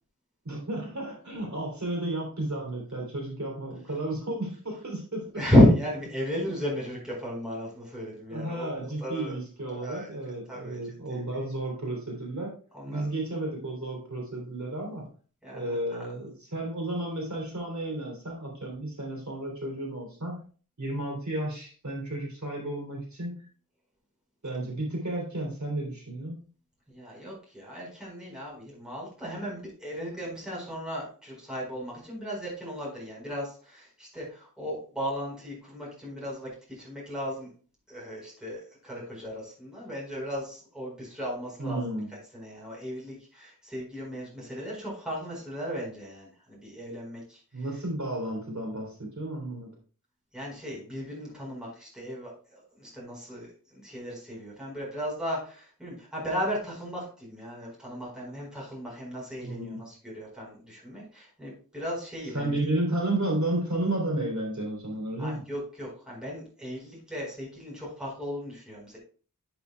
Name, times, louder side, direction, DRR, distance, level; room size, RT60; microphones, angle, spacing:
voice 1, 0.4-5.3 8.3-12.5 12.9-15.1 15.5-20.4 20.8-23.4 24.4-26.4 41.6-42.1 47.5-49.7 59.4-59.8 62.3-65.4, right 1 dB, 55° right, -1 dB, 3.3 m, -32 dB
voice 2, 5.3-9.3 9.7-10.1 10.5-10.8 11.1-11.2 12.7-13.1 15.4-16.1 26.9-37.5 37.9-41.8 42.3-47.4 50.3-53.5 53.7-62.5 65.2-69.0, equal, ahead, -4 dB, 4.4 m, -33 dB
11.0 x 6.9 x 2.3 m, 0.40 s
wide cardioid pair, 50°, 33 cm